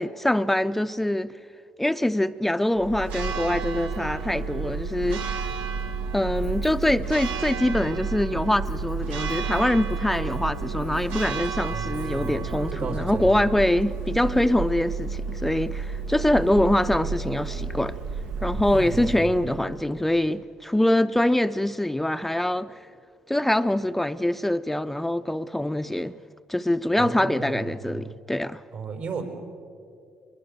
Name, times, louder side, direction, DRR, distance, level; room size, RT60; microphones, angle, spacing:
voice 1, 0.0-1.3 1.8-5.4 6.1-18.0 18.4-22.7 23.3-26.2 26.5-28.6, left 1 dB, 5° left, 0.5 m, -24 dB
Church bell, 2.8-20.0, right 5 dB, 90° right, 1.2 m, -31 dB
voice 2, 11.7-13.5 18.7-19.3 27.0-28.1 28.7-29.2, right 4 dB, 75° right, 4.7 m, -35 dB
23.0 x 21.5 x 6.7 m
cardioid pair, 85°, 3 cm